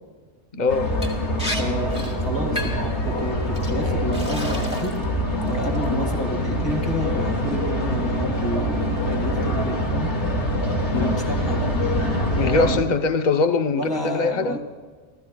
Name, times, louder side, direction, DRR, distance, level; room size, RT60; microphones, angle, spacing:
voice 1, 0.5-0.9 5.9-6.1 10.9-11.2 12.4-14.6, left 4 dB, 45° left, 8 dB, 0.9 m, -22 dB
sound 1, 0.7-12.8, equal, 75° left, 2.6 m, -24 dB
Liquid, 1.0-1.1 1.4-1.6 1.9-2.1 2.6-2.9 3.5-3.7 4.1-5.0 5.4-5.8, equal, 5° right, 2.2 m, -32 dB
voice 2, 1.6-5.0 5.4-10.1 10.9-11.7 12.4-12.8 13.7-14.6, equal, 20° left, 2 dB, 2.2 m, -30 dB
29.5 x 15.0 x 2.3 m, 1.5 s
omnidirectional pair, 1.2 m